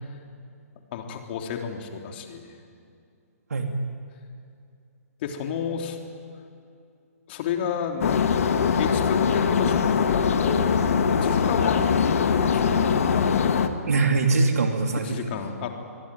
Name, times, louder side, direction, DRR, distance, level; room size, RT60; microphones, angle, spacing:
voice 1, 0.9-2.4 5.2-6.0 7.3-8.3 8.8-10.7 11.1-12.8 15.0-15.7, left 7 dB, 45° left, 3 dB, 3.5 m, -31 dB
sound 1, 8.0-13.7, left 6 dB, 60° left, 1.8 m, -22 dB
voice 2, 13.9-15.3, right 3 dB, 75° right, 4 dB, 2.7 m, -23 dB
25.5 x 21.5 x 9.3 m, 2.5 s
figure-of-eight pair, 130°, 8 cm